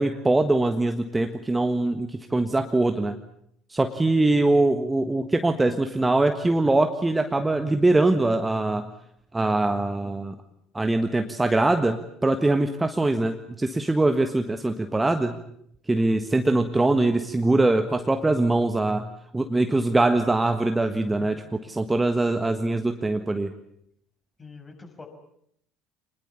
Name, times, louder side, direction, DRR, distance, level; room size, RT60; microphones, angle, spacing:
voice 1, 0.0-3.2 3.7-8.9 9.3-10.3 10.7-15.4 15.9-19.1 19.3-21.4 21.7-23.5, right 2 dB, 10° right, 7 dB, 1.5 m, -22 dB
voice 2, 20.0-20.6 21.2-21.4 24.4-25.1, left 3 dB, 25° left, 4 dB, 5.9 m, -44 dB
26.5 x 21.0 x 8.4 m, 0.72 s
figure-of-eight pair, 60°, 0 cm